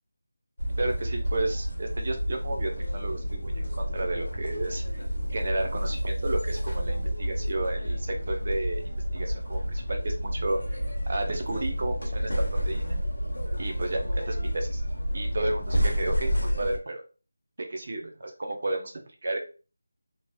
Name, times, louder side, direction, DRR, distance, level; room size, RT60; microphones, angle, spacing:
sound 1, 0.6-16.8, equal, 85° left, 0.8 m, -30 dB
voice 1, 0.8-4.8 5.3-10.8 11.1-13.0 13.6-14.8 15.1-17.0 17.7-18.9 19.2-19.4, right 2 dB, 45° right, 3 dB, 0.6 m, -32 dB
3.0 x 2.7 x 2.2 m, 0.35 s
figure-of-eight pair, 170°, 0 cm